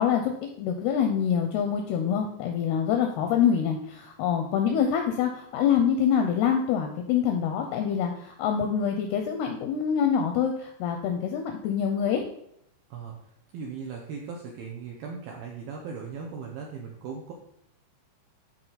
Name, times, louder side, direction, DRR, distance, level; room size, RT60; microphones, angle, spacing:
voice 1, 0.0-12.2, left 8 dB, 85° left, 4 dB, 2.3 m, -25 dB
voice 2, 12.9-17.3, right 5 dB, 80° right, 0 dB, 2.1 m, -38 dB
12.0 x 4.6 x 4.0 m, 0.73 s
omnidirectional pair, 5.3 m